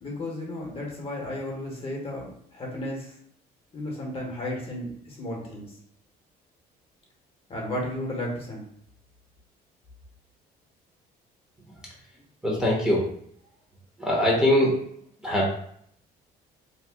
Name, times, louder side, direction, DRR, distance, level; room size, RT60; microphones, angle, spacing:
voice 1, 0.0-3.1 3.7-5.7 7.5-8.6, left 1 dB, 35° left, -2 dB, 0.9 m, -33 dB
voice 2, 12.4-13.1 14.0-14.8 15.2-15.5, left 1 dB, 5° right, -5 dB, 0.8 m, -22 dB
2.8 x 2.1 x 3.4 m, 0.66 s
cardioid pair, 110°, 17 cm